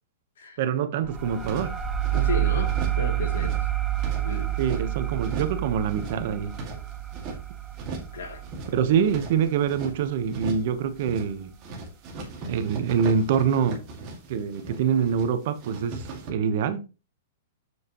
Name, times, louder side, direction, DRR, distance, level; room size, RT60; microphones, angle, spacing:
voice 1, 0.6-1.8 4.6-6.5 8.7-11.5 12.5-13.9 14.3-16.9, right 7 dB, 50° right, 1.1 m, -25 dB
sound 1, 1.0-10.3, right 13 dB, 10° right, 0.6 m, -29 dB
sound 2, 1.1-2.3 2.6-3.1 3.3-4.9 5.2-5.6 5.9-7.4 7.7-8.2 8.4-9.9 10.3-10.7 11.0-11.4 11.6-15.3 15.5-16.3, right 3 dB, 30° right, 2.1 m, -38 dB
voice 2, 2.1-3.7 4.1-4.6 8.1-8.4, left 3 dB, 85° left, 2.7 m, -34 dB
7.3 x 6.4 x 3.0 m
hypercardioid pair, 160°, 0 cm